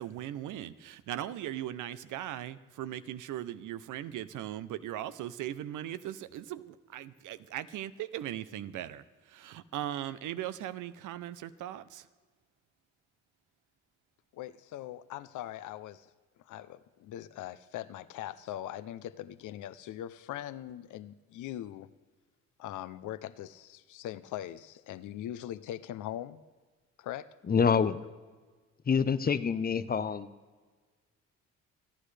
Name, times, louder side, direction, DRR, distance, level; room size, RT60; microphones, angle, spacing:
voice 1, 0.0-12.1, right 12 dB, 80° right, 14 dB, 0.7 m, -39 dB
voice 2, 14.3-16.1 16.4-21.9 22.6-26.4 27.0-27.3, left 12 dB, 80° left, 13 dB, 0.7 m, -41 dB
voice 3, 27.5-28.0 28.9-30.3, left 6 dB, 30° left, 13 dB, 0.7 m, -26 dB
28.0 x 10.0 x 3.3 m, 1.4 s
cardioid pair, 90°, 30 cm